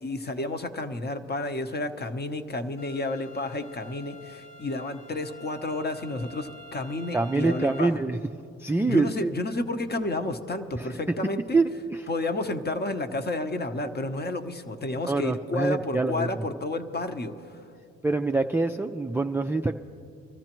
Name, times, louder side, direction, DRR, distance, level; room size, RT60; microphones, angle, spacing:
voice 1, 0.0-7.9 8.9-11.6 12.1-17.3, left 2 dB, 35° left, 7 dB, 0.9 m, -31 dB
sound 1, 2.8-7.8, left 2 dB, 90° left, 1.1 m, -47 dB
voice 2, 7.1-8.2 8.6-9.3 10.8-10.9 11.5-12.1 15.1-16.5 18.0-19.8, right 3 dB, 10° right, 7 dB, 0.3 m, -25 dB
25.0 x 14.0 x 3.0 m, 2.6 s
cardioid pair, 90°, 30 cm